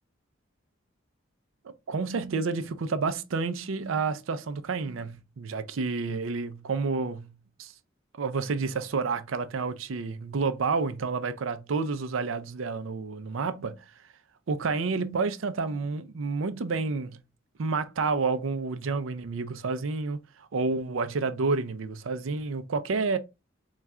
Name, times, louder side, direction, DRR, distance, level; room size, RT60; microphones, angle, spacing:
voice 1, 1.9-7.3 7.6-7.7 8.2-13.8 14.5-17.2 17.6-23.2, right 4 dB, 85° right, 0.5 m, -29 dB
3.5 x 2.4 x 4.2 m
head